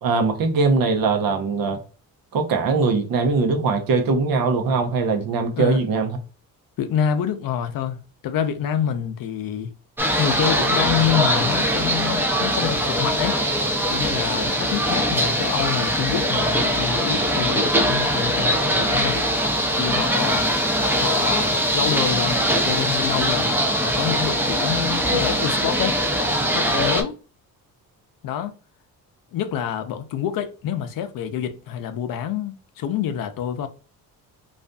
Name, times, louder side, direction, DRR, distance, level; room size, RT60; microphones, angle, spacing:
voice 1, 0.0-1.8 2.3-6.2, right 4 dB, 70° right, 0.7 m, -21 dB
voice 2, 6.8-9.7 10.2-13.4 13.9-19.2 19.8-20.4 21.0-26.0 26.5-27.2 28.2-28.5 29.3-33.7, left 9 dB, 65° left, 0.5 m, -27 dB
sound 1, 10.0-27.0, equal, 5° right, 0.4 m, -22 dB
2.5 x 2.4 x 2.2 m
cardioid pair, 100°, 37 cm